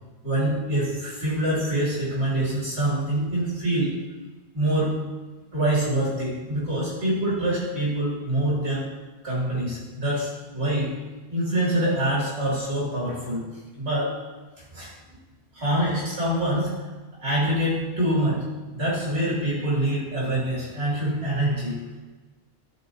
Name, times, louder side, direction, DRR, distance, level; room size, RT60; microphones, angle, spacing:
voice 1, 0.2-4.0 4.5-5.0 5.5-8.9 9.2-10.9 11.3-13.5 13.8-14.2 14.7-14.9 15.5-16.8 17.2-21.8, right 1 dB, 80° right, -7 dB, 2.7 m, -25 dB
13.0 x 5.1 x 2.7 m, 1.2 s
omnidirectional pair, 1.1 m